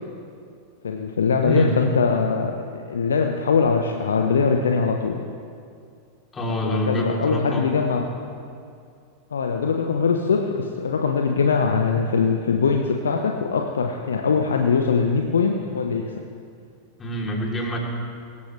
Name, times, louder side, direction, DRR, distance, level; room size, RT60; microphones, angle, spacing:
voice 1, 0.8-5.2 6.6-8.1 9.3-16.1, left 5 dB, 70° left, 3 dB, 1.0 m, -22 dB
voice 2, 1.4-1.8 6.3-7.7 17.0-17.8, equal, 20° left, -2 dB, 3.4 m, -26 dB
24.0 x 14.0 x 3.4 m, 2.3 s
figure-of-eight pair, 90°, 0 cm